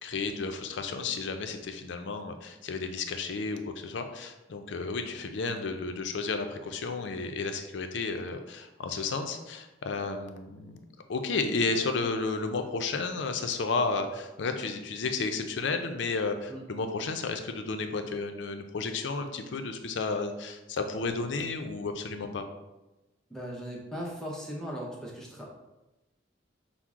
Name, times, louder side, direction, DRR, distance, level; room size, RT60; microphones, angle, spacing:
voice 1, 0.0-10.8 11.1-22.5, left 4 dB, 75° left, 6 dB, 0.4 m, -32 dB
voice 2, 23.3-25.5, equal, 5° left, -3 dB, 0.6 m, -38 dB
5.9 x 2.0 x 3.6 m, 1.0 s
head